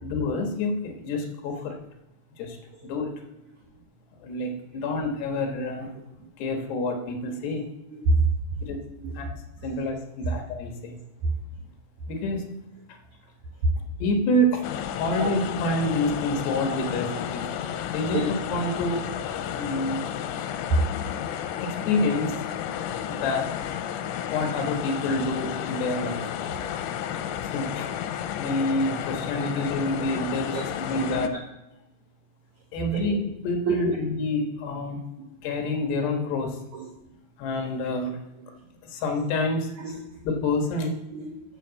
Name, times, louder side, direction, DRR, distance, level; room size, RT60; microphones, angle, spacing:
voice 1, 0.0-1.8 2.4-2.6 2.8-3.1 4.2-5.9 6.4-7.6 8.6-8.8 9.2-9.3 9.6-11.0 12.1-12.5 14.0-14.6 15.0-18.2 18.5-19.0 19.5-20.0 21.6-22.4 23.1-23.5 24.3-26.4 27.4-27.9 28.3-31.3 32.7-35.0 35.4-36.6 37.4-38.2 38.8-39.7 40.2-40.9, left 2 dB, 70° left, 3 dB, 3.4 m, -27 dB
voice 2, 7.9-8.2 9.0-9.2 10.2-10.3 11.2-11.3 15.2-15.4 20.7-20.8 26.5-26.7 29.5-29.7 30.5-30.6 30.9-31.2 32.9-33.1 33.7-33.8 35.2-35.3 36.7-36.9 38.4-38.5 39.8-40.1 41.1-41.4, right 3 dB, 75° right, 1 dB, 1.7 m, -27 dB
sound 1, 14.6-31.3, left 9 dB, 90° left, 3.1 m, -32 dB
8.8 x 7.0 x 7.6 m, 0.91 s
omnidirectional pair, 5.2 m